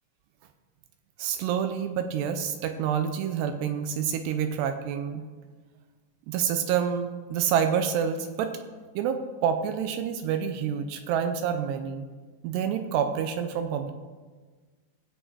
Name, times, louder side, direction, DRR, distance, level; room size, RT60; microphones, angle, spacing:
voice 1, 1.2-5.2 6.3-8.5 9.0-12.1 12.4-13.9, right 8 dB, 80° right, 7 dB, 2.4 m, -28 dB
16.0 x 7.9 x 4.7 m, 1.4 s
omnidirectional pair, 5.5 m